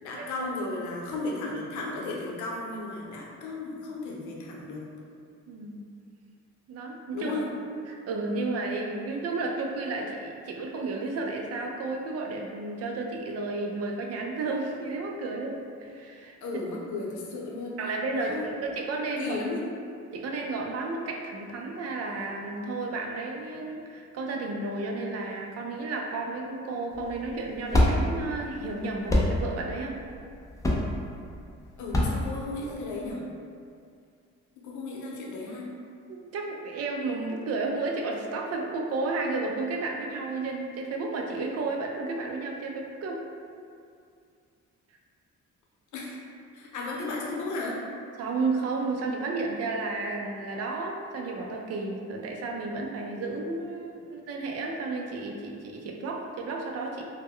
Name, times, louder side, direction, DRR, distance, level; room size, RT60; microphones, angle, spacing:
voice 1, 0.0-4.8 7.1-7.5 16.4-17.8 18.1-18.6 19.2-19.6 31.8-33.2 34.6-35.7 45.9-46.2 46.5-47.8, left 2 dB, 75° left, -3 dB, 0.6 m, -34 dB
voice 2, 5.5-5.8 6.7-7.3 7.9-16.4 17.8-19.4 20.1-30.0 36.1-43.3 48.2-57.0, right 3 dB, 55° right, 1 dB, 0.4 m, -32 dB
sound 1, 26.9-33.1, left 1 dB, 10° left, 0.4 m, -26 dB
2.1 x 2.1 x 3.5 m, 2.3 s
cardioid pair, 90°, 30 cm